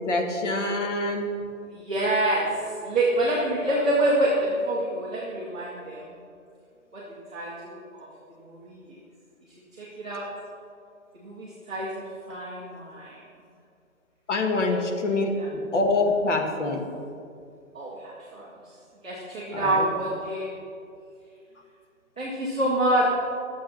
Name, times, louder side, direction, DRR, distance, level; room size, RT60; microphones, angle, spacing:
voice 1, 0.1-1.3 14.3-16.9 19.5-19.9, left 2 dB, 60° left, 3 dB, 1.8 m, -25 dB
voice 2, 1.7-6.1 6.9-8.1 8.3-9.0 9.7-10.3 11.1-13.2 14.7-14.8 15.4-15.5 17.7-18.5 19.0-20.5 22.2-23.1, right 1 dB, 5° right, -14 dB, 0.5 m, -27 dB
12.0 x 7.4 x 5.9 m, 2.4 s
hypercardioid pair, 160°, 41 cm